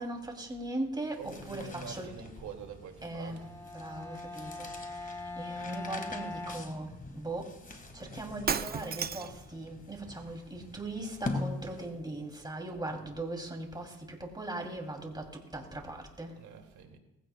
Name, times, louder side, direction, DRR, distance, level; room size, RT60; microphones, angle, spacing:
voice 1, 0.0-2.2 3.0-3.5 3.7-16.4, right 2 dB, 15° right, 1 dB, 2.7 m, -39 dB
sound 1, 1.0-12.2, left 3 dB, 30° left, 1.6 m, -44 dB
voice 2, 1.1-3.5 16.3-17.0, right 7 dB, 70° right, 3 dB, 2.2 m, -46 dB
Bowed string instrument, 3.3-7.4, left 2 dB, 10° left, 1.6 m, -42 dB
Shatter, 8.5-9.4, right 7 dB, 30° right, 0.5 m, -32 dB
20.0 x 15.5 x 2.2 m, 0.93 s
cardioid pair, 90°, 30 cm